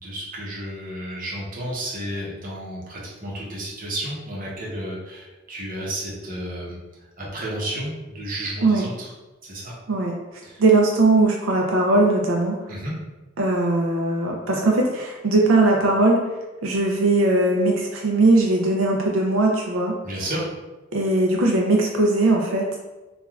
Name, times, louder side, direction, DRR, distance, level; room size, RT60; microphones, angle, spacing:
voice 1, 0.0-6.8 7.2-9.1 9.4-9.7 10.4-10.6 12.7-12.9 20.0-20.5, right 1 dB, 45° right, -5 dB, 0.7 m, -32 dB
voice 2, 10.6-12.6 13.4-16.2 16.6-19.9 20.9-22.8, right 2 dB, 85° right, 0 dB, 0.4 m, -19 dB
3.1 x 2.3 x 2.3 m, 1.1 s
head